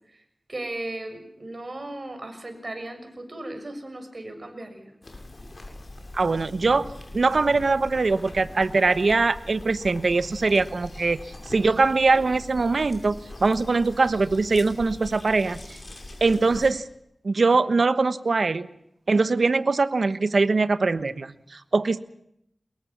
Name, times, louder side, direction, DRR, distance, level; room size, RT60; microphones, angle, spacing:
voice 1, 0.5-4.9, right 1 dB, 50° right, 6 dB, 6.7 m, -36 dB
sound 1, 5.0-16.7, left 2 dB, 50° left, 6.5 m, -42 dB
voice 2, 6.1-6.9 7.1-11.2 11.5-13.1 13.4-15.6 16.2-16.8 17.2-18.7 19.1-22.0, right 3 dB, 75° right, 13 dB, 1.2 m, -22 dB
23.5 x 22.0 x 7.2 m, 0.77 s
wide cardioid pair, 65°, 0 cm